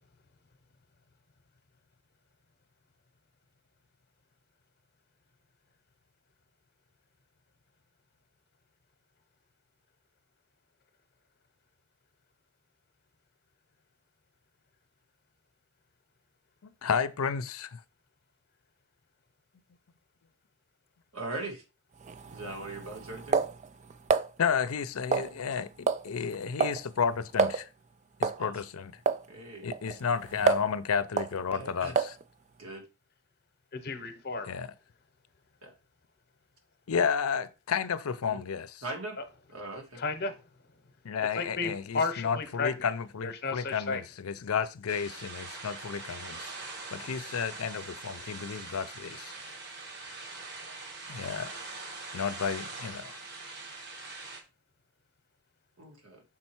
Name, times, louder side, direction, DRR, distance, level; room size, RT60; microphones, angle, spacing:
voice 1, 16.8-17.8 24.4-27.7 28.2-28.9 29.6-32.2 34.5-34.7 36.9-38.8 41.0-46.5 46.9-49.3 51.1-51.5 52.1-53.2, left 6 dB, 75° left, 0.5 m, -32 dB
voice 2, 21.1-21.6 22.3-23.4 28.4-28.5 29.3-29.7 31.5-31.9 32.6-32.8 35.6-35.7 38.2-38.4 38.8-39.2 39.5-40.0 55.8-56.2, right 2 dB, 75° right, 1.9 m, -40 dB
sound 1, 22.0-24.3 25.1-25.6 25.9-26.1 26.3-26.8 27.1-27.2 27.4-27.6 28.2-28.4 29.1-29.2 29.7-30.8 31.2-31.3 32.0-32.2, right 5 dB, 30° right, 0.3 m, -28 dB
voice 3, 33.7-34.5 39.2-39.3 40.0-40.4 41.3-42.9 43.2-44.0, left 4 dB, 45° left, 0.9 m, -33 dB
sound 2, 44.9-54.4, right 3 dB, 50° right, 1.2 m, -43 dB
6.0 x 4.4 x 4.5 m
head